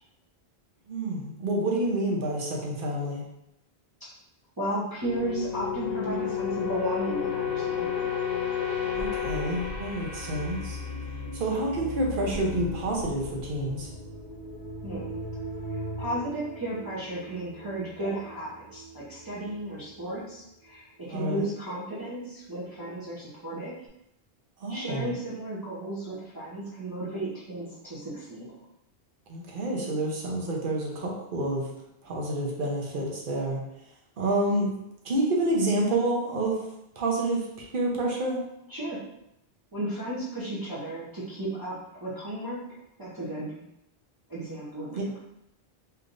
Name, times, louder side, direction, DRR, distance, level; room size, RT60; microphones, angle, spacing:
voice 1, 0.9-3.2 9.0-10.8 11.3-13.9 21.1-21.4 24.6-25.1 29.3-31.7 32.0-33.6 34.2-34.7 35.0-36.6 37.0-38.4 44.9-45.1, right 1 dB, 60° right, -2 dB, 0.9 m, -28 dB
voice 2, 4.6-8.1 14.8-15.2 16.0-23.8 24.7-28.5 38.7-39.0 39.7-42.6 43.0-43.6 44.3-44.9, right 1 dB, 25° right, -9 dB, 0.7 m, -34 dB
sound 1, 5.0-19.7 19.9-20.2, left 6 dB, 70° left, 0.8 m, -34 dB
3.3 x 2.8 x 2.5 m, 0.82 s
omnidirectional pair, 1.0 m